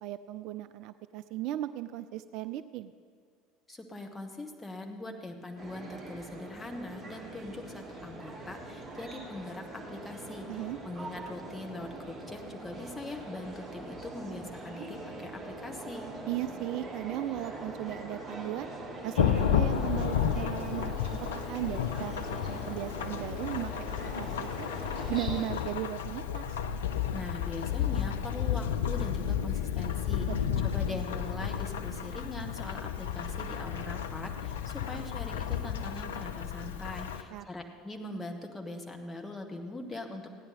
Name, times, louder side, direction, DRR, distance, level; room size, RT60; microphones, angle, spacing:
voice 1, 0.0-2.9 10.5-10.8 16.3-18.7 19.0-21.0 21.3-24.7 25.1-26.6 30.5-30.6 37.3-37.4, right 14 dB, 50° right, 12 dB, 0.3 m, -37 dB
voice 2, 3.7-16.1 27.1-30.3 30.6-40.3, left 2 dB, 15° left, 3 dB, 1.5 m, -42 dB
sound 1, 5.6-25.5, right 2 dB, 10° right, 3.4 m, -43 dB
Thunderstorm / Rain, 19.2-37.2, left 9 dB, 70° left, 0.5 m, -32 dB
16.0 x 10.0 x 4.3 m, 2.2 s
figure-of-eight pair, 65°, 0 cm